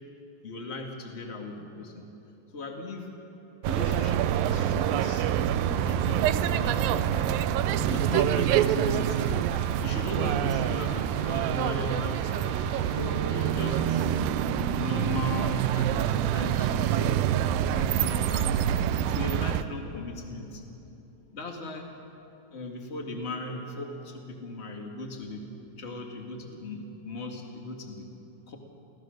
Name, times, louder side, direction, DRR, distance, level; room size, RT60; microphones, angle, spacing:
voice 1, 0.4-2.1 2.5-3.1 3.6-7.4 7.9-9.4 9.8-12.3 12.9-17.2 17.6-18.6 19.0-20.6 21.3-21.9 22.5-28.1 28.5-28.6, left 2 dB, 25° left, 2 dB, 1.4 m, -37 dB
sound 1, 3.6-19.6, right 10 dB, 85° right, 2.4 m, -26 dB
sound 2, 8.5-13.9, left 6 dB, 60° left, 1.9 m, -48 dB
27.0 x 16.5 x 6.5 m, 3.0 s
omnidirectional pair, 4.0 m